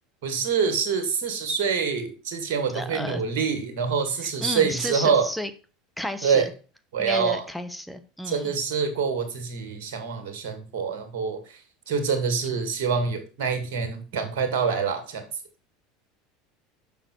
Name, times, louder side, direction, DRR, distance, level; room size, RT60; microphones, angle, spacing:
voice 1, 0.2-5.3 6.2-6.5 6.9-7.4 8.3-15.3, right 6 dB, 65° right, 7 dB, 2.2 m, -26 dB
voice 2, 2.7-3.2 4.2-5.5 6.0-6.5 7.0-8.5, equal, ahead, 9 dB, 1.0 m, -32 dB
6.9 x 5.9 x 4.5 m, 0.36 s
hypercardioid pair, 85°, 0 cm